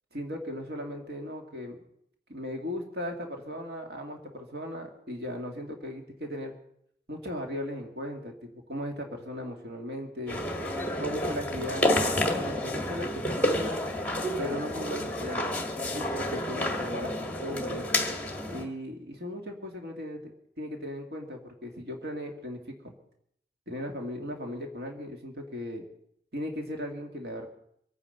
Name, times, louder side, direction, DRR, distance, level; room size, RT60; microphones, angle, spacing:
voice 1, 0.1-1.8 2.3-6.6 7.1-10.4 11.0-13.8 14.4-15.5 15.9-17.1 17.4-17.9 18.5-20.3 20.6-22.9 23.7-25.9 26.3-27.5, left 1 dB, 65° right, 3 dB, 2.2 m, -37 dB
sound 1, 10.3-18.6, left 1 dB, 10° left, 1.6 m, -30 dB
24.0 x 9.5 x 5.5 m, 0.71 s
head